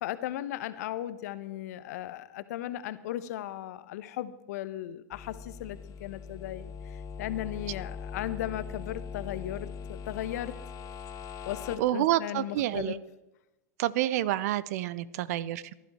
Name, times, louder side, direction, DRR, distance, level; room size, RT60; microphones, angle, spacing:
voice 1, 0.0-10.5 11.4-13.0, left 13 dB, 65° left, 14 dB, 0.9 m, -36 dB
sound 1, 5.1-11.8, left 5 dB, 40° left, 1.3 m, -41 dB
voice 2, 11.8-13.0 13.8-15.8, right 13 dB, 65° right, 19 dB, 0.6 m, -28 dB
16.0 x 11.5 x 4.3 m, 0.98 s
hypercardioid pair, 90°, 9 cm